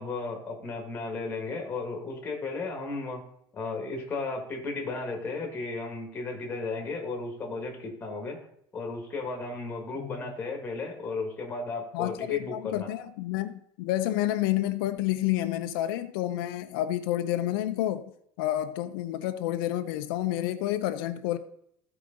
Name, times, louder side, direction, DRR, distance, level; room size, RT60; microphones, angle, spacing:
voice 1, 0.0-3.2 3.5-8.4 8.7-12.9, left 3 dB, 15° left, 1.8 m, -34 dB
voice 2, 11.9-18.1 18.4-21.4, left 14 dB, 90° left, 0.7 m, -29 dB
14.5 x 4.9 x 3.9 m
cardioid pair, 180°, 12 cm